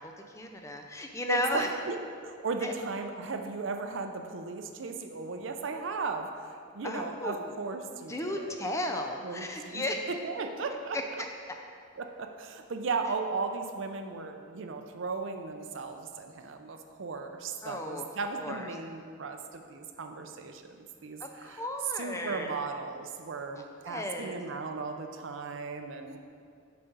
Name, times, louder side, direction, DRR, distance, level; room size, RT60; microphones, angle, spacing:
voice 1, 0.0-1.7 2.6-2.7 6.8-7.5 8.1-10.0 10.9-11.3 17.6-18.0 18.4-18.7 21.2-22.6 23.6-24.4, left 1 dB, 15° left, 3 dB, 0.4 m, -35 dB
voice 2, 1.3-8.5 9.2-11.0 12.0-21.6 22.0-26.2, right 4 dB, 65° right, 5 dB, 0.5 m, -36 dB
7.4 x 5.8 x 4.0 m, 2.2 s
head